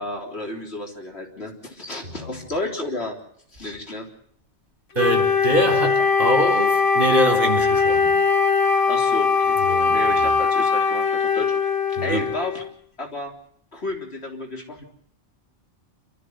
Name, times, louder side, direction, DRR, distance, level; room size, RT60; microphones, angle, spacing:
voice 1, 0.0-3.2 3.5-4.1 8.9-9.6 9.9-12.6 13.0-13.3 13.7-14.8, left 1 dB, 60° left, 4.0 m, -32 dB
voice 2, 2.0-2.4 5.0-8.1 9.6-10.0 12.0-12.2, right 1 dB, 45° right, 4.1 m, -24 dB
Wind instrument woodwind instrument, 5.0-12.7, left 5 dB, 80° left, 2.2 m, -20 dB
28.0 x 14.0 x 8.0 m
omnidirectional pair, 1.3 m